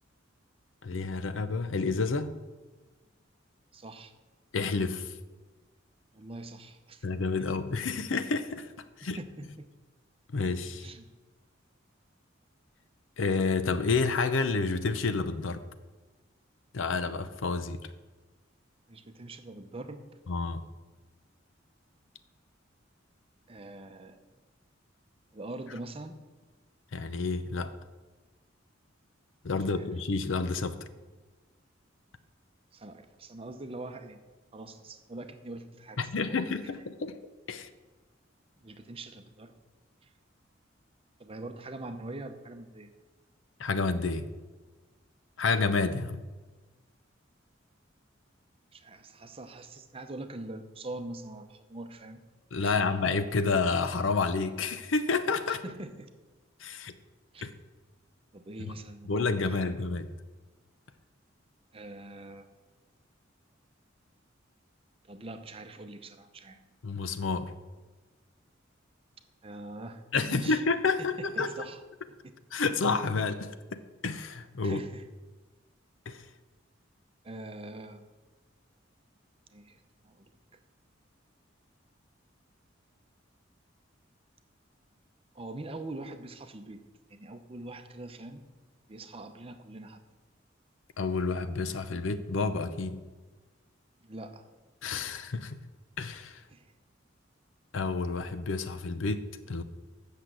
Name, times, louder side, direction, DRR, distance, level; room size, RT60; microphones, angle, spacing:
voice 1, 0.8-2.4 4.5-5.1 7.0-8.7 9.0-9.2 10.3-10.9 13.2-15.6 16.7-17.8 20.3-20.6 26.9-27.7 29.4-30.8 36.0-37.2 37.5-37.7 43.6-44.3 45.4-46.2 52.5-55.6 56.6-57.0 57.4-57.5 58.6-58.7 59.0-60.1 66.8-67.5 70.1-71.5 72.5-74.8 76.1-76.2 91.0-93.0 94.8-95.6 96.0-96.4 97.7-99.6, left 4 dB, 75° left, 11 dB, 0.6 m, -29 dB
voice 2, 3.7-4.1 6.1-7.1 9.0-9.7 10.8-11.1 18.9-20.1 23.5-24.2 25.3-26.2 29.7-29.9 32.7-34.2 34.5-36.4 38.6-39.5 40.0-40.1 41.2-42.9 48.7-52.2 52.6-52.8 55.5-56.1 57.3-57.5 58.3-59.1 59.5-59.7 61.7-62.5 65.1-66.6 69.4-70.0 70.3-70.6 71.0-71.8 74.6-75.0 77.2-78.1 79.5-80.3 85.3-86.8 87.1-88.4 88.9-90.0 94.0-94.4 96.5-96.7, right 2 dB, 30° right, 8 dB, 0.7 m, -43 dB
8.1 x 6.6 x 7.5 m, 1.3 s
head